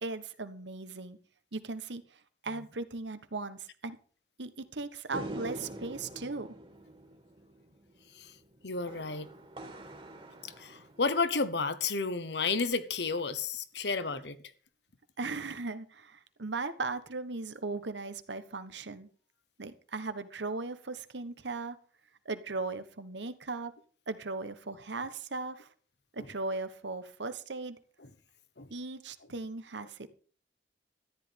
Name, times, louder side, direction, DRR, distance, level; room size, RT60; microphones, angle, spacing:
voice 1, 0.0-1.2 1.5-2.0 2.4-4.0 4.4-6.5 15.2-19.1 19.6-21.8 22.2-23.7 24.1-25.7 26.1-27.8 28.7-30.0, right 3 dB, 85° right, 1.2 m, -38 dB
sound 1, 5.1-11.6, right 1 dB, 30° right, 2.1 m, -45 dB
voice 2, 8.6-9.3 10.6-14.4 28.6-28.7, left 4 dB, 75° left, 1.2 m, -31 dB
13.5 x 10.5 x 5.3 m
head